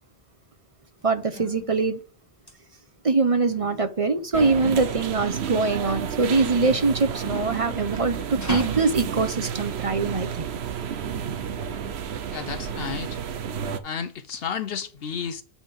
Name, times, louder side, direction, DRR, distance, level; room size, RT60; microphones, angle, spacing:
sound 1, 1.0-11.0, left 2 dB, 15° left, 1.1 m, -41 dB
voice 1, 1.0-2.0 3.0-10.5, right 4 dB, 35° right, 0.7 m, -23 dB
sound 2, 4.3-13.8, right 8 dB, 75° right, 1.0 m, -31 dB
voice 2, 12.3-13.2 13.8-15.4, left 7 dB, 70° left, 0.8 m, -32 dB
8.6 x 3.6 x 5.2 m
omnidirectional pair, 1.1 m